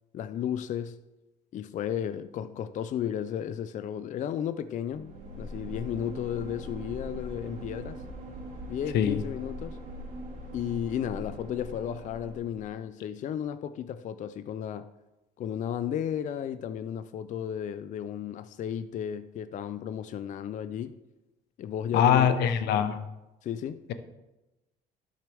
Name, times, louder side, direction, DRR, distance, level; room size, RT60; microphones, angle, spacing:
voice 1, 0.1-1.0 1.5-8.0 8.7-9.8 10.5-14.9 15.4-21.0 21.6-22.4 23.4-23.8, left 9 dB, 50° left, 0.4 m, -34 dB
sound 1, 4.9-12.7, equal, 75° right, 3.5 m, -41 dB
voice 2, 21.9-23.0, left 8 dB, 75° left, 0.7 m, -23 dB
12.0 x 6.5 x 3.4 m
cardioid pair, 110°, 17 cm